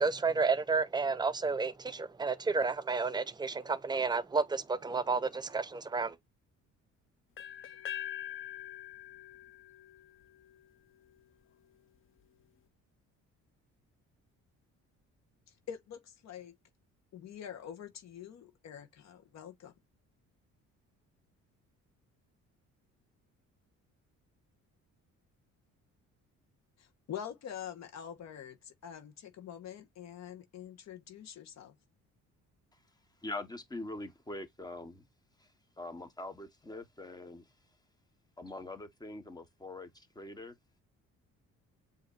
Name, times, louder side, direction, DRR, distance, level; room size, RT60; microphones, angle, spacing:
voice 1, 0.0-6.1, right 4 dB, 15° right, 0.4 m, -31 dB
sound 1, 7.4-11.2, left 11 dB, 40° left, 0.6 m, -44 dB
voice 2, 15.7-16.6 17.1-19.7 26.8-31.7, left 9 dB, 60° left, 1.2 m, -45 dB
voice 3, 33.2-35.1 35.4-35.5 35.8-37.5 38.4-40.5, left 2 dB, 15° left, 0.9 m, -43 dB
7.7 x 2.9 x 2.3 m
cardioid pair, 135°, 31 cm